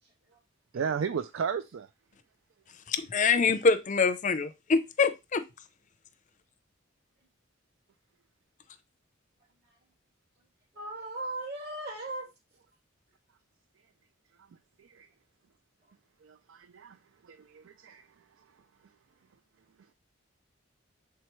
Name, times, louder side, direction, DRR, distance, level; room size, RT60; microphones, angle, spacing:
voice 1, 0.0-0.4 9.6-9.8 10.7-12.3, right 2 dB, 55° right, 2.7 m, -38 dB
voice 2, 0.7-1.9 14.4-14.5 14.8-15.1 16.2-17.0 17.2-18.4, right 6 dB, 70° right, 0.4 m, -35 dB
voice 3, 2.9-5.4, left 4 dB, 40° left, 0.5 m, -25 dB
7.1 x 4.6 x 3.0 m
head